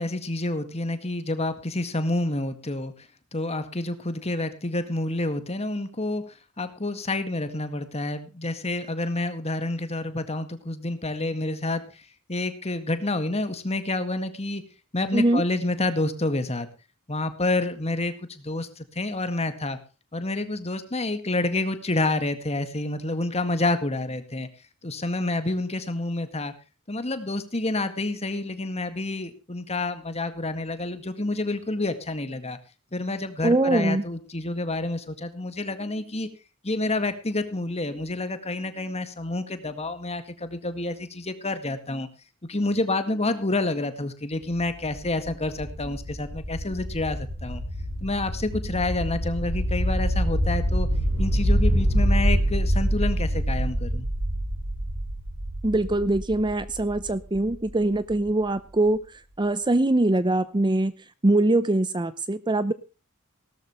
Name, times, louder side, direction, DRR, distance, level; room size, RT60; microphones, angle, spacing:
voice 1, 0.0-2.9 3.3-6.2 6.6-11.8 12.3-14.6 14.9-16.7 17.1-19.8 20.1-24.5 24.8-26.5 26.9-32.6 32.9-36.3 36.6-42.1 42.5-47.6 48.0-50.9 51.2-54.1, left 2 dB, 30° left, 10 dB, 1.9 m, -28 dB
voice 2, 33.4-34.0 55.6-59.0 59.4-60.9 61.2-62.7, right 2 dB, 20° right, 14 dB, 0.7 m, -22 dB
sound 1, 44.4-58.1, equal, 90° right, 7.6 m, -26 dB
17.5 x 13.0 x 3.1 m, 0.32 s
head